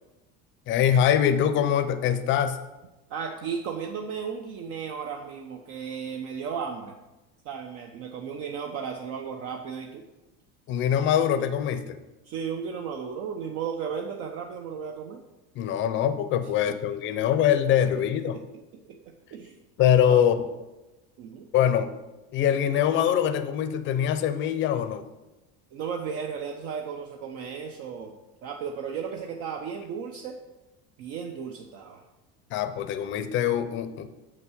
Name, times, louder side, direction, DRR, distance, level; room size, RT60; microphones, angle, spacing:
voice 1, 0.7-2.6 10.7-12.0 15.6-18.4 19.8-20.4 21.5-21.9 22.3-25.0 32.5-34.1, left 9 dB, 40° left, 10 dB, 0.6 m, -23 dB
voice 2, 3.1-7.0 7.4-10.0 12.2-15.2 17.8-17.9 18.9-19.6 20.0-20.2 21.2-21.5 25.7-28.1 28.4-30.4 31.0-32.0, right 6 dB, 50° right, 3 dB, 0.7 m, -35 dB
7.3 x 5.9 x 6.2 m, 1.1 s
cardioid pair, 165°, 32 cm